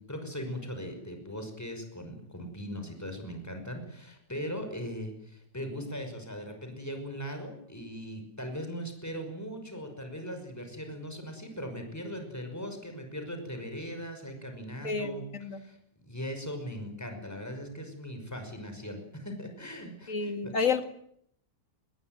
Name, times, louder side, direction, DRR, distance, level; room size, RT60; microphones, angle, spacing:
voice 1, 0.0-15.2 15.5-15.8 16.0-20.5, equal, 10° left, 6 dB, 5.8 m, -39 dB
voice 2, 14.8-15.6 20.1-20.8, left 5 dB, 50° left, 8 dB, 2.5 m, -30 dB
24.5 x 21.5 x 9.3 m, 0.71 s
omnidirectional pair, 1.8 m